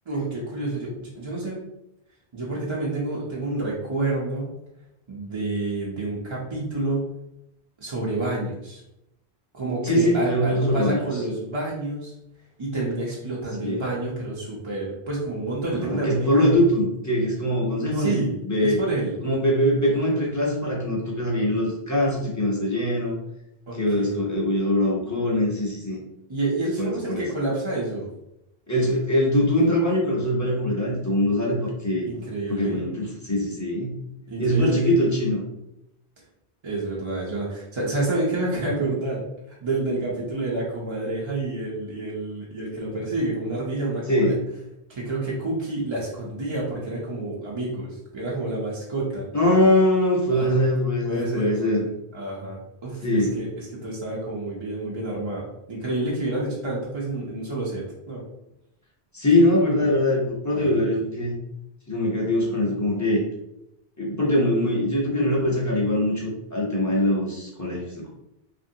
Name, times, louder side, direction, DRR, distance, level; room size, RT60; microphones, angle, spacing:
voice 1, 0.1-1.6 2.3-4.5 5.1-7.1 7.8-8.8 9.5-12.1 12.6-16.6 17.9-18.3 18.6-19.1 23.7-24.1 26.3-28.1 32.1-32.8 34.3-34.8 36.6-44.3 44.9-49.3 50.3-50.6 51.0-53.5 53.8-58.2 60.5-60.8, right 2 dB, 35° right, -5 dB, 0.5 m, -29 dB
voice 2, 9.8-11.2 13.6-13.8 15.7-18.2 18.4-18.8 19.2-23.2 23.7-26.0 26.8-27.3 28.7-32.1 32.5-33.9 34.4-35.4 44.1-44.4 49.3-51.8 53.0-53.4 59.1-61.3 61.9-63.2 64.0-68.1, left 1 dB, 20° left, -4 dB, 0.6 m, -22 dB
2.9 x 2.6 x 2.7 m, 0.85 s
omnidirectional pair, 1.1 m